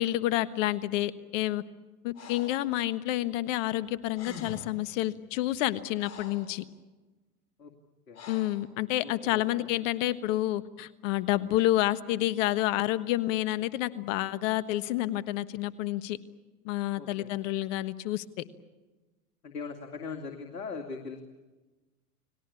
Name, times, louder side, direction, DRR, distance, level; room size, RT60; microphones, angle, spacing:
voice 1, 0.0-1.6 2.0-6.6 8.3-16.2 16.6-18.2, left 15 dB, 55° left, 13 dB, 1.5 m, -29 dB
Breathing, 2.1-2.7 3.8-3.9 4.1-4.8 5.5-6.5 8.1-8.7, left 5 dB, 35° left, 6.0 m, -45 dB
voice 2, 9.0-9.7 16.9-17.3 19.4-21.2, left 4 dB, 90° left, 3 dB, 2.7 m, -40 dB
30.0 x 20.0 x 8.5 m, 1.2 s
hypercardioid pair, 105°, 46 cm